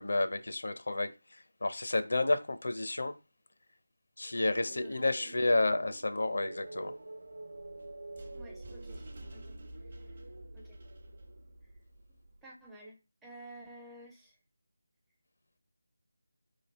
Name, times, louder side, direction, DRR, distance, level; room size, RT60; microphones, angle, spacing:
voice 1, 0.0-3.1 4.2-6.9, left 2 dB, 65° left, 0.5 m, -31 dB
sound 1, 4.2-12.3, right 2 dB, 65° right, 0.4 m, -49 dB
voice 2, 4.5-5.4 8.3-9.6 10.5-10.8 12.4-14.4, right 1 dB, 5° right, 0.4 m, -52 dB
sound 2, 7.2-12.4, right 1 dB, 35° right, 0.7 m, -49 dB
3.2 x 2.4 x 4.1 m
figure-of-eight pair, 170°, 0 cm